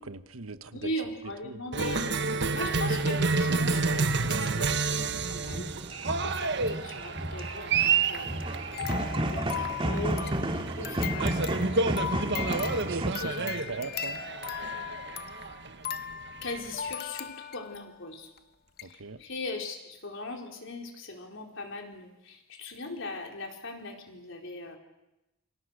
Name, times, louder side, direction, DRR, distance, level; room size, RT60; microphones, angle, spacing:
voice 1, 0.0-0.7 1.5-1.6 12.8-14.2 18.8-19.2, right 4 dB, 80° right, 12 dB, 1.2 m, -40 dB
voice 2, 0.7-5.7 6.2-11.4 12.6-12.9 13.2-13.8 16.4-18.3 18.8-24.8, left 2 dB, 65° left, 2 dB, 4.5 m, -39 dB
Cheering, 1.7-16.9, right 4 dB, 60° right, 1.3 m, -30 dB
sound 1, 5.3-13.1, right 1 dB, 25° right, 2.3 m, -32 dB
sound 2, 8.7-17.9 18.4-18.5 18.8-18.9, left 9 dB, 50° left, 1.1 m, -38 dB
28.5 x 26.0 x 6.6 m, 0.95 s
head